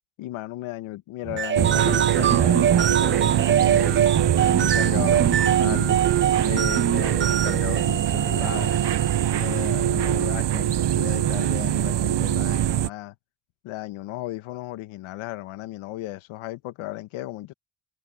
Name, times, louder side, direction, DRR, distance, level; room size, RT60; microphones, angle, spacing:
voice 1, 0.2-3.9 4.4-6.0 6.5-8.8 9.3-13.1 13.6-17.5, left 17 dB, 90° left, 1.6 m, -35 dB
sound 1, 1.2-9.5, right 9 dB, 30° right, 0.3 m, -24 dB
sound 2, 1.6-12.9, right 10 dB, 60° right, 1.2 m, -23 dB
supercardioid pair, 50°, 47 cm